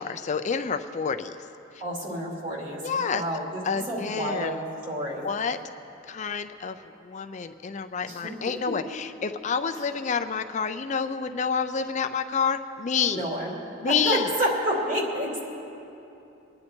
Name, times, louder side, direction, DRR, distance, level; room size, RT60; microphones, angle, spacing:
voice 1, 0.0-1.3 2.8-3.2 3.6-4.6 5.2-5.6 6.1-6.8 7.0-13.3 13.8-14.3, left 6 dB, 40° left, 8 dB, 0.4 m, -28 dB
voice 2, 1.8-5.3 8.0-8.3 13.1-13.5 13.9-15.4, equal, 40° right, -2 dB, 2.7 m, -29 dB
24.0 x 9.8 x 4.4 m, 2.8 s
head